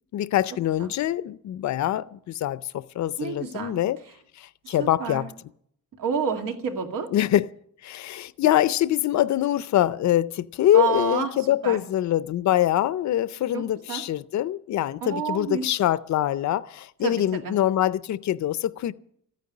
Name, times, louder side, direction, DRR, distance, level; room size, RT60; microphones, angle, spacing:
voice 1, 0.1-4.0 4.4-5.3 7.1-7.5 7.8-18.9, left 12 dB, 60° left, 0.5 m, -24 dB
voice 2, 3.2-3.8 4.6-5.3 6.0-7.1 10.7-11.3 11.6-11.8 13.5-14.0 15.0-15.6 17.0-17.5, right 6 dB, 85° right, 2.3 m, -29 dB
14.5 x 9.3 x 9.8 m
wide cardioid pair, 170°, 33 cm